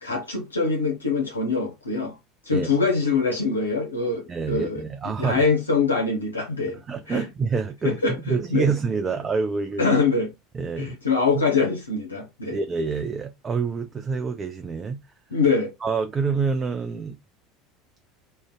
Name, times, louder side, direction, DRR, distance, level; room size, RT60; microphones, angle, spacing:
voice 1, 0.0-2.2 2.4-4.8 5.2-6.8 7.1-7.3 7.8-8.7 9.8-10.3 10.8-12.6 15.3-15.7, left 4 dB, 85° left, 0.5 m, -24 dB
voice 2, 4.3-5.4 6.9-9.8 10.5-11.0 11.3-11.4 12.5-15.0 15.8-17.2, right 5 dB, 30° right, 0.4 m, -27 dB
2.5 x 2.1 x 3.3 m
figure-of-eight pair, 75°, 0 cm